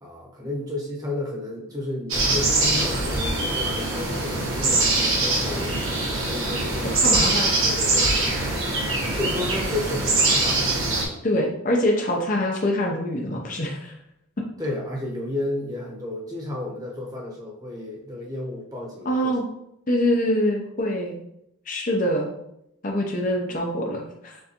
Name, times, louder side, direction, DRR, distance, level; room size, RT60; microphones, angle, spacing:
voice 1, 0.0-8.6 9.2-10.6 14.6-19.4 23.4-23.6, left 2 dB, 15° right, -2 dB, 0.9 m, -32 dB
sound 1, 2.1-11.0, right 2 dB, 70° right, 1.2 m, -23 dB
voice 2, 7.0-7.5 11.2-13.9 19.0-19.4 19.9-21.2 21.7-22.3 22.8-24.4, left 1 dB, 40° left, 0 dB, 0.6 m, -24 dB
6.5 x 2.6 x 2.8 m, 0.81 s
head